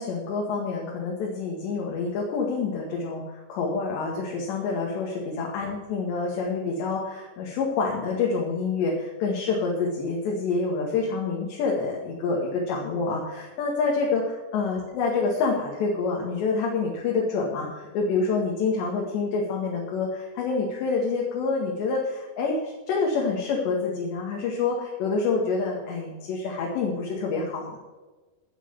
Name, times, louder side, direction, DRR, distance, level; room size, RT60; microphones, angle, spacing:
voice 1, 0.0-14.2 14.5-27.7, left 4 dB, 75° left, -2 dB, 4.1 m, -27 dB
16.0 x 6.2 x 7.0 m, 1.2 s
omnidirectional pair, 5.2 m